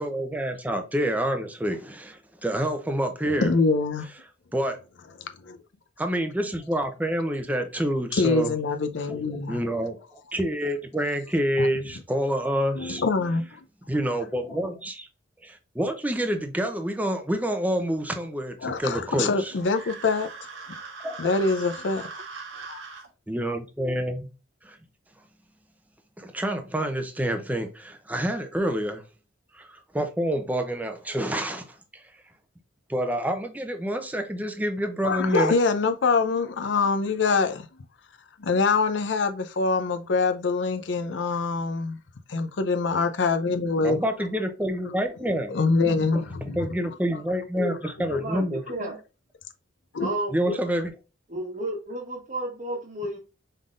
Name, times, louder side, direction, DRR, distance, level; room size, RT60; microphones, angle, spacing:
voice 1, 0.0-3.5 4.5-4.8 6.0-8.5 9.5-13.1 13.9-15.1 15.4-19.5 21.0-21.2 23.3-24.3 24.6-24.8 26.2-29.0 29.5-31.7 31.9-32.0 32.9-35.5 43.8-45.6 46.5-48.6 50.3-50.9, equal, 10° right, 0.6 m, -27 dB
voice 2, 3.3-4.1 5.4-5.6 8.1-9.6 11.6-11.7 12.8-13.6 18.6-20.3 21.2-22.1 22.7-22.8 35.0-37.7 38.4-42.0 42.3-44.0 45.5-46.6 48.1-48.2 49.9-50.1, left 4 dB, 70° left, 0.5 m, -24 dB
sound 1, 19.5-23.1, right 4 dB, 90° right, 1.3 m, -40 dB
voice 3, 48.1-49.0 50.0-50.6 51.3-53.2, equal, 40° right, 1.2 m, -32 dB
5.6 x 3.5 x 2.5 m
head